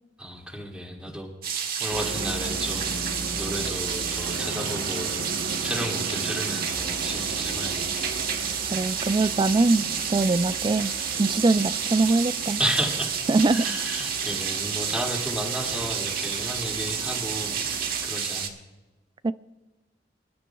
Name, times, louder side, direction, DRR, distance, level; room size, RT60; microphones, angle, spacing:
voice 1, 0.2-1.3 1.8-8.2 12.6-13.1 13.5-18.5, equal, 5° right, 2.4 m, -33 dB
sound 1, 1.4-18.5, right 7 dB, 55° right, 1.4 m, -30 dB
sound 2, 1.9-18.1, right 2 dB, 80° right, 1.1 m, -37 dB
voice 2, 8.7-12.6 13.3-13.7 19.2-19.3, right 3 dB, 25° right, 0.4 m, -23 dB
26.0 x 12.0 x 2.4 m
head